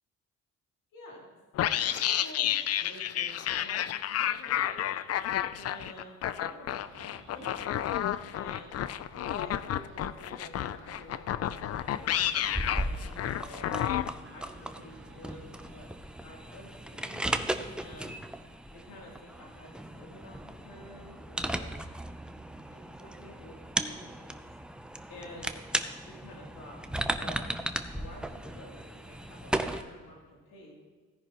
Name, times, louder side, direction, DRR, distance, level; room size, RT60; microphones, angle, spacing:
voice 1, 0.9-1.4 1.8-4.7 5.5-7.7 8.3-8.8 9.2-13.7 14.3-15.9 16.2-18.2 18.7-21.7 22.7-24.4 25.1-25.6 26.0-26.8 27.1-27.5 27.9-30.7, left 1 dB, 90° left, -3 dB, 3.1 m, -50 dB
sound 1, 1.5-14.1, left 11 dB, 55° left, 0.4 m, -31 dB
sound 2, 6.7-15.9, right 3 dB, 40° right, 1.1 m, -54 dB
sound 3, 11.7-29.8, right 1 dB, 5° right, 0.6 m, -37 dB
16.0 x 10.0 x 3.0 m, 1.4 s
cardioid pair, 90°, 30 cm